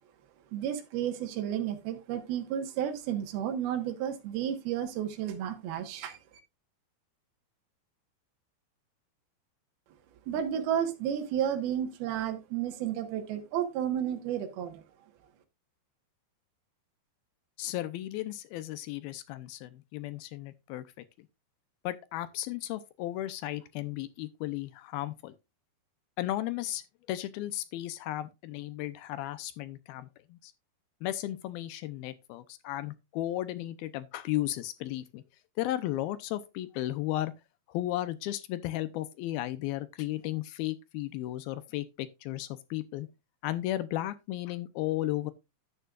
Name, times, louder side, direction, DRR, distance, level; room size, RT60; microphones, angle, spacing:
voice 1, 0.5-6.2 10.3-14.8, right 10 dB, 75° right, 3.1 m, -32 dB
voice 2, 17.6-20.8 21.2-21.3 21.8-25.4 26.2-26.8 27.1-30.5 31.0-35.2 35.6-37.3 37.7-43.1 43.4-45.3, left 15 dB, 80° left, 2.4 m, -34 dB
11.0 x 9.3 x 2.4 m
omnidirectional pair, 4.6 m